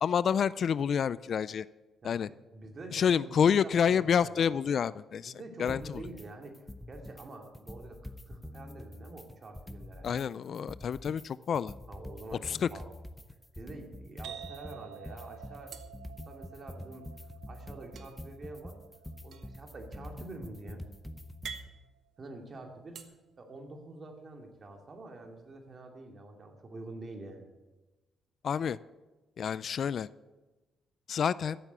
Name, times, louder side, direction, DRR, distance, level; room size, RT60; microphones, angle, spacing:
voice 1, 0.0-1.6 2.0-2.3 2.9-6.0 10.0-11.7 12.5-12.7 28.4-28.8 29.4-30.1 31.1-31.6, left 7 dB, 55° left, 19 dB, 0.3 m, -28 dB
voice 2, 2.0-4.6 5.3-10.1 11.9-12.9 13.6-15.8 16.3-17.1 17.5-18.8 19.2-20.8 22.2-23.0 23.4-27.5, right 2 dB, 40° right, 3 dB, 2.4 m, -47 dB
sound 1, 5.7-6.3 6.5-7.3 7.5-10.3 10.5-21.7, left 1 dB, 10° left, 0.8 m, -46 dB
sound 2, 12.4-13.3 13.6-13.8 14.0-14.8 15.7-17.0 17.9-23.0, right 6 dB, 65° right, 1.2 m, -50 dB
sound 3, 14.2-21.7, right 10 dB, 85° right, 1.0 m, -51 dB
13.5 x 7.4 x 8.1 m, 1.2 s
cardioid pair, 90°, 0 cm